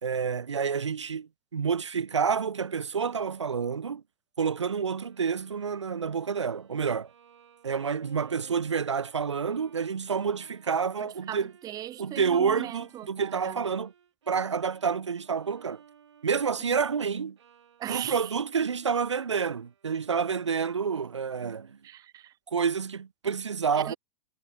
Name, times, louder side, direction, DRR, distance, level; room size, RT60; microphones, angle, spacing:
voice 1, 0.0-4.0 4.4-7.1 7.6-11.5 12.0-13.9 14.3-15.8 16.2-17.4 17.9-21.8 22.5-23.9, right 6 dB, 90° right, 0.4 m, -29 dB
Bowed string instrument, 4.9-21.0, right 8 dB, 75° right, 2.8 m, -58 dB
voice 2, 11.3-13.6 17.8-18.3 21.8-22.3 23.7-24.0, right 13 dB, 25° right, 0.5 m, -38 dB
figure-of-eight pair, 100°, 15 cm